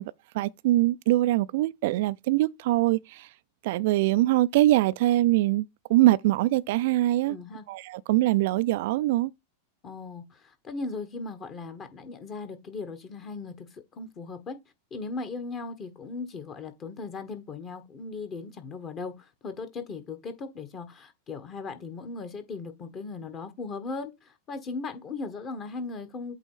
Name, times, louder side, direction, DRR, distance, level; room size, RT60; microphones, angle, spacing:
voice 1, 0.0-3.3 3.6-5.6 5.9-7.4 7.7-9.3, right 16 dB, 50° right, 0.4 m, -23 dB
voice 2, 7.3-7.6 9.8-14.6 14.9-26.3, left 4 dB, 30° left, 1.5 m, -38 dB
8.4 x 3.0 x 4.9 m
figure-of-eight pair, 90°, 0 cm